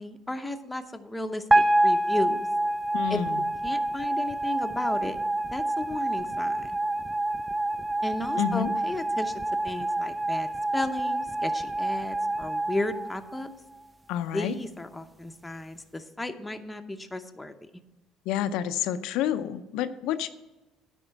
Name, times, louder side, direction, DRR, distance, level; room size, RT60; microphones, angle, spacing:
voice 1, 0.0-2.5 3.1-3.2 3.6-5.2 5.5-6.7 8.0-13.5 14.3-17.5, left 2 dB, 10° left, 6 dB, 0.7 m, -34 dB
sound 1, 1.5-13.8, right 1 dB, 10° right, 0.3 m, -27 dB
voice 2, 2.9-3.5 8.4-8.7 14.1-14.5 18.3-20.3, left 10 dB, 80° left, 9 dB, 0.5 m, -29 dB
9.9 x 4.3 x 7.4 m, 1.1 s
cardioid pair, 105°, 0 cm